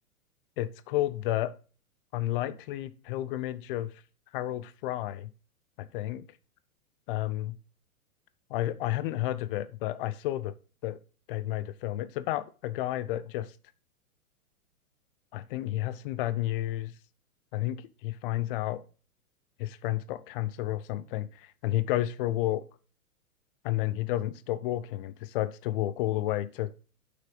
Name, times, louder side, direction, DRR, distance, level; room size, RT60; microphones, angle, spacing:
voice 1, 0.6-1.5 2.1-3.9 4.3-5.3 5.8-6.2 7.1-7.6 8.5-10.5 10.8-11.0 11.3-13.5 15.3-16.9 17.5-18.8 19.6-22.6 23.6-26.7, left 14 dB, 40° left, 14 dB, 0.6 m, -31 dB
6.3 x 5.9 x 5.0 m, 0.36 s
figure-of-eight pair, 105°, 42 cm